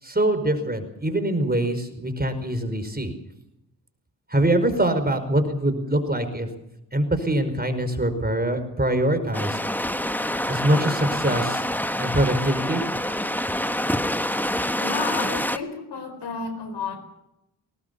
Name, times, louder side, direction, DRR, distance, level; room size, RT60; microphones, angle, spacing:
voice 1, 0.0-3.1 4.3-6.5 6.9-9.6 10.5-11.6 12.0-12.8, right 1 dB, 20° right, 9 dB, 5.2 m, -23 dB
sound 1, 9.3-15.6, left 1 dB, 5° left, 1.3 m, -26 dB
voice 2, 14.8-17.0, left 5 dB, 70° left, 10 dB, 4.6 m, -31 dB
20.5 x 18.5 x 7.1 m, 0.86 s
supercardioid pair, 45°, 43 cm